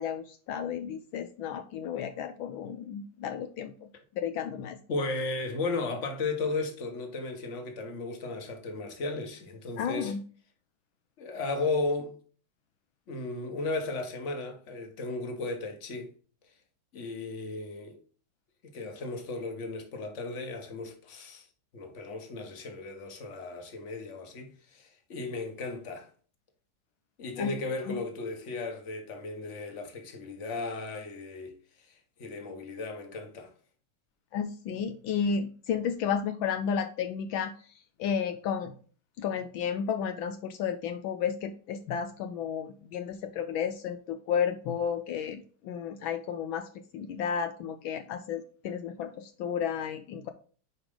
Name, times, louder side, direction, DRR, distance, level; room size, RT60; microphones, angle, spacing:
voice 1, 0.0-3.9 4.2-4.8 9.8-10.2 27.4-27.5 27.9-28.0 34.3-37.7 38.0-38.7 39.2-50.3, left 7 dB, 75° left, 1.4 m, -32 dB
voice 2, 4.9-10.1 11.2-12.1 13.1-16.1 16.9-18.0 18.7-21.4 21.7-26.1 27.2-33.5, left 3 dB, 40° left, 1.5 m, -35 dB
9.9 x 4.9 x 3.8 m
omnidirectional pair, 2.3 m